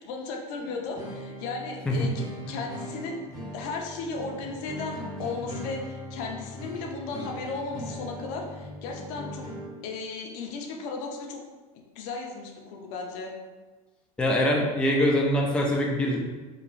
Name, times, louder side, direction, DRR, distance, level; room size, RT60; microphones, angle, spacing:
voice 1, 0.0-3.2 3.5-9.5 9.8-11.4 11.7-13.3, left 4 dB, 65° left, 1 dB, 0.5 m, -35 dB
sound 1, 0.6-9.7, equal, 15° right, 1.0 m, -40 dB
voice 2, 14.2-16.3, left 1 dB, 5° left, -1 dB, 0.3 m, -24 dB
3.0 x 2.3 x 2.5 m, 1.3 s
supercardioid pair, 110°, 18 cm